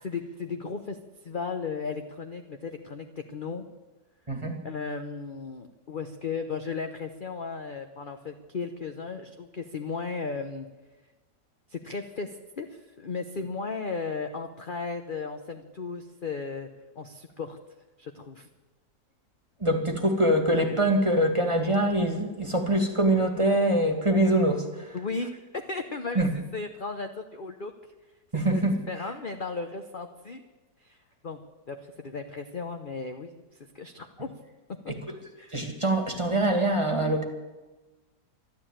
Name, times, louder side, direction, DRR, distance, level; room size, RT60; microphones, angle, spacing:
voice 1, 0.0-1.0 1.2-3.7 4.6-10.7 11.7-16.7 17.0-17.6 18.0-18.5 24.9-26.2 26.5-27.7 28.5-28.6 28.9-30.4 30.8-31.0 31.2-31.4 31.7-33.3 33.7-34.3 34.8-34.9 35.4-35.5, left 4 dB, 40° left, 5 dB, 0.9 m, -35 dB
voice 2, 4.3-4.6 19.6-25.0 26.2-26.3 28.3-28.7 34.9-35.0 35.5-37.2, right 1 dB, 15° right, 5 dB, 2.1 m, -24 dB
13.0 x 12.0 x 8.9 m, 1.2 s
omnidirectional pair, 1.9 m